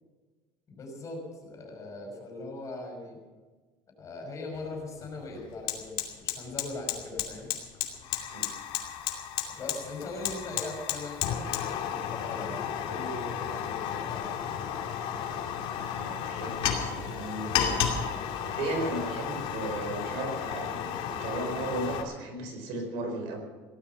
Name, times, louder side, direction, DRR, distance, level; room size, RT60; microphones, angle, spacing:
voice 1, 0.7-3.2 4.0-7.5 9.6-14.3, left 2 dB, 35° left, 1 dB, 5.7 m, -40 dB
Fire, 4.5-4.7 5.0-22.0, left 9 dB, 65° left, 2.6 m, -33 dB
voice 2, 15.7-17.6 18.4-23.4, right 2 dB, 85° right, 4 dB, 4.6 m, -35 dB
17.5 x 13.0 x 5.9 m, 1.3 s
cardioid pair, 140°, 10 cm